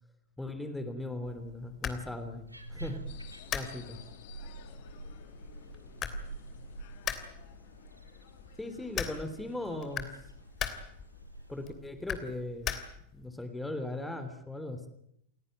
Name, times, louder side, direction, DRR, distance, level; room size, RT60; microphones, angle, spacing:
voice 1, 0.4-3.0 3.5-3.8 8.6-10.1 11.5-12.8 13.1-14.9, left 2 dB, 5° left, 9 dB, 3.2 m, -38 dB
sound 1, 1.2-13.3, left 9 dB, 30° left, 3.1 m, -42 dB
sound 2, 2.5-11.7, right 3 dB, 85° right, 2.7 m, -47 dB
sound 3, 3.1-13.0, left 10 dB, 50° left, 2.2 m, -56 dB
voice 2, 3.7-4.1 4.4-7.3 8.6-10.4, left 4 dB, 70° left, 0 dB, 7.0 m, -60 dB
29.0 x 17.5 x 9.1 m, 0.75 s
figure-of-eight pair, 90°, 0 cm